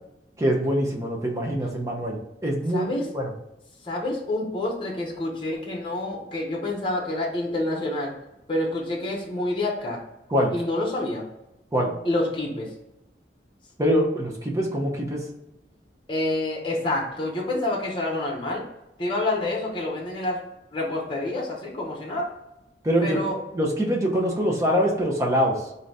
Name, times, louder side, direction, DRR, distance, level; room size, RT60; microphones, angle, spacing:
voice 1, 0.4-3.3 10.3-10.5 11.7-11.9 13.8-15.2 22.8-23.2 23.5-25.6, equal, 15° right, -1 dB, 0.7 m, -24 dB
voice 2, 2.7-3.2 3.8-8.1 8.5-10.0 10.5-11.2 12.0-12.7 16.1-18.6 19.0-20.5 20.7-22.3 23.0-23.4, left 1 dB, 25° left, -1 dB, 0.9 m, -28 dB
3.8 x 2.7 x 3.3 m, 0.91 s
head